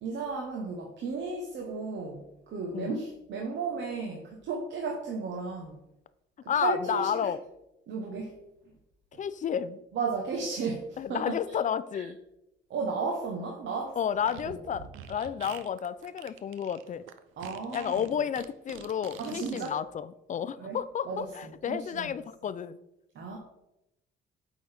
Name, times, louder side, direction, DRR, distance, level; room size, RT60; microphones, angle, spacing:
voice 1, 0.0-5.8 6.6-7.3 7.9-8.3 9.9-11.4 11.9-12.1 12.7-14.0 14.5-14.6 17.4-18.0 19.2-19.8 20.6-20.8 21.0-21.3 21.7-22.1 23.1-23.4, right 4 dB, 70° right, 1 dB, 1.0 m, -34 dB
voice 2, 6.5-7.4 9.2-9.8 11.0-12.2 14.0-17.0 17.7-22.8, left 8 dB, 40° left, 15 dB, 0.4 m, -31 dB
Fart, 14.2-19.7, right 9 dB, 85° right, 0.5 m, -47 dB
8.5 x 4.0 x 3.4 m, 0.88 s
cardioid pair, 90°, 20 cm